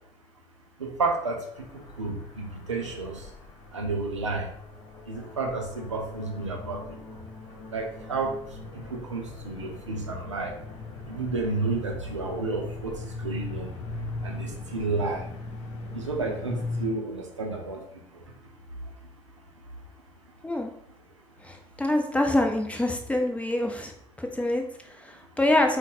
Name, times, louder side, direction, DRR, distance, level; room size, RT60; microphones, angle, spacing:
voice 1, 0.8-1.4 2.0-3.1 3.7-4.5 5.1-6.8 7.7-8.3 8.9-10.5 11.1-13.7 14.2-15.2 15.9-17.8, right 3 dB, 85° right, 2 dB, 0.6 m, -31 dB
sound 1, 1.5-16.9, left 3 dB, 50° left, 0.8 m, -40 dB
voice 2, 21.4-23.9 24.2-25.8, left 1 dB, 10° left, 3 dB, 0.7 m, -26 dB
4.0 x 2.2 x 4.1 m, 0.68 s
figure-of-eight pair, 55°, 15 cm